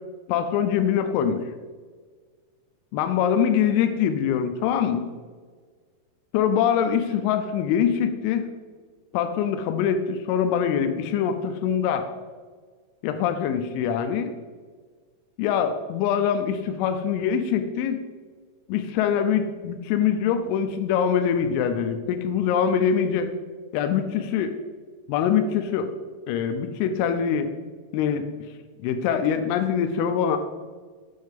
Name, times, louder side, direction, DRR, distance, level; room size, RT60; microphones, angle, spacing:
voice 1, 0.3-1.4 2.9-5.1 6.3-8.5 9.1-12.1 13.0-14.3 15.4-18.0 18.7-23.3 23.7-24.5 25.1-25.9 26.3-27.5 27.9-28.5 28.8-30.4, left 8 dB, 90° left, 8 dB, 3.0 m, -24 dB
7.8 x 6.4 x 3.5 m, 1.5 s
omnidirectional pair, 5.4 m